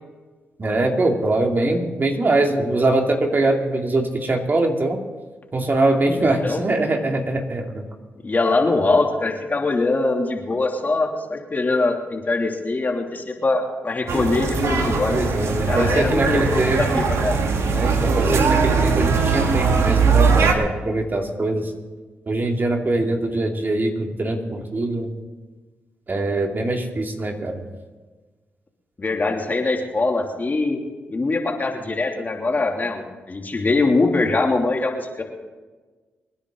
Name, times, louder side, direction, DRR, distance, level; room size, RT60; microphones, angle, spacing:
voice 1, 0.6-5.0 5.5-7.8 15.1-17.0 17.7-21.7 22.3-25.1 26.1-27.6, right 2 dB, 45° right, 2 dB, 2.5 m, -22 dB
voice 2, 6.2-6.6 8.2-15.2 15.7-17.3 29.0-30.8 31.1-35.2, left 3 dB, 40° left, 2 dB, 2.9 m, -22 dB
sound 1, 14.1-20.5, right 5 dB, 75° right, 2.0 m, -20 dB
27.0 x 10.0 x 4.0 m, 1.3 s
supercardioid pair, 45°, 5 cm